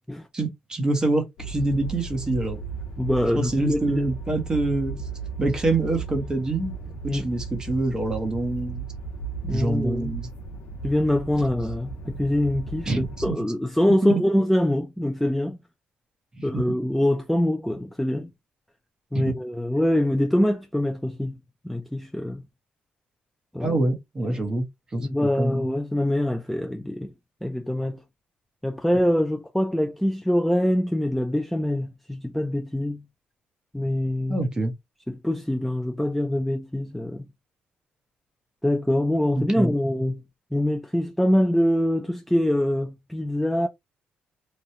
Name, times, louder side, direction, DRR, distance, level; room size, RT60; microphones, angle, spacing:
voice 1, 0.3-2.6 3.3-5.0 5.4-8.8 9.5-10.3 12.9-13.4 13.8-14.2 16.3-16.8 19.1-19.3 23.6-24.6 24.9-25.6 34.3-34.7 39.3-39.7, right 2 dB, 20° right, 1.0 m, -26 dB
sound 1, 1.4-13.3, right 4 dB, 75° left, 0.9 m, -35 dB
voice 2, 3.0-4.0 7.1-7.3 9.4-10.1 10.8-15.6 16.4-18.3 19.1-21.4 21.6-22.4 23.5-23.8 24.2-24.4 25.0-27.1 27.4-28.0 28.6-33.0 33.7-34.4 35.1-37.3 38.6-40.2 40.5-43.7, left 1 dB, ahead, 0.3 m, -24 dB
3.0 x 2.3 x 2.7 m
cardioid pair, 125°, 3 cm